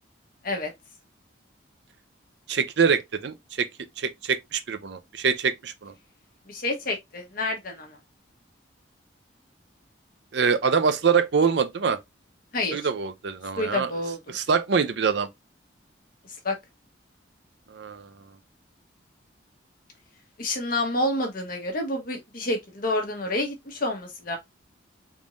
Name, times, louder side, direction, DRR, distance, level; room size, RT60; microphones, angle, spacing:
voice 1, 2.5-3.7 4.0-5.9 10.3-12.0 12.7-13.9 14.3-15.3 17.7-18.1, right 6 dB, 60° right, 0.5 m, -24 dB
voice 2, 6.5-8.0 12.5-12.9 13.6-14.2 16.4-16.5 20.4-24.4, left 2 dB, 45° left, 1.1 m, -28 dB
3.6 x 2.6 x 2.9 m
head